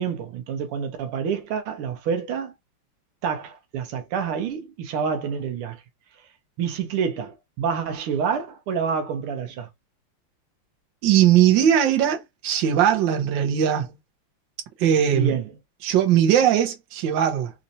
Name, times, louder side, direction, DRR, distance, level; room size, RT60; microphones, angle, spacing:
voice 1, 0.0-2.5 3.2-5.8 6.6-9.7 15.1-15.5, right 6 dB, 90° right, 1.7 m, -27 dB
voice 2, 11.0-13.9 14.8-15.3 15.8-17.5, right 10 dB, 65° right, 1.5 m, -19 dB
4.2 x 2.6 x 2.7 m
omnidirectional pair, 2.4 m